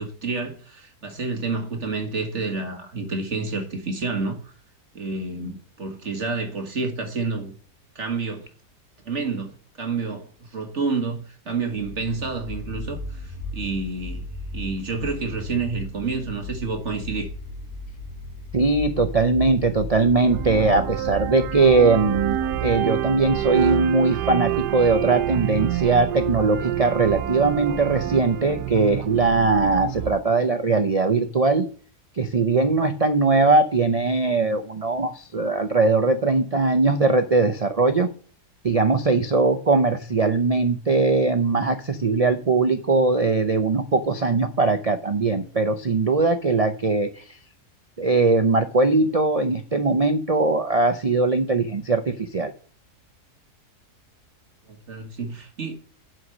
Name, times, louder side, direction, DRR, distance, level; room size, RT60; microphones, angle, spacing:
voice 1, 0.0-4.5 4.9-7.5 7.9-8.5 9.0-14.2 14.5-17.3 54.7-55.7, right 4 dB, 45° right, 1.7 m, -29 dB
sound 1, 11.7-28.7, left 1 dB, 65° left, 3.0 m, -37 dB
voice 2, 18.5-31.7 32.2-38.1 38.6-47.4 48.0-52.5, right 3 dB, 70° right, 0.3 m, -20 dB
sound 2, 20.2-30.1, right 12 dB, 90° right, 1.2 m, -27 dB
7.9 x 5.8 x 6.5 m
omnidirectional pair, 1.7 m